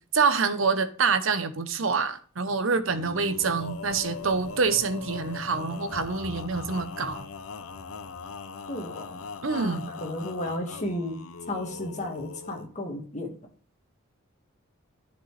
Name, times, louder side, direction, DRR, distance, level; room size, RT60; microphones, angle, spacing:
voice 1, 0.1-7.2 9.4-9.9, right 4 dB, 70° right, 0.8 m, -26 dB
Male singing, 2.9-12.7, left 4 dB, 90° left, 0.7 m, -40 dB
sound 1, 3.3-10.8, equal, 20° left, 3.8 m, -49 dB
voice 2, 8.7-11.2 11.5-13.4, left 1 dB, 35° left, 1.8 m, -34 dB
10.5 x 5.3 x 3.2 m
head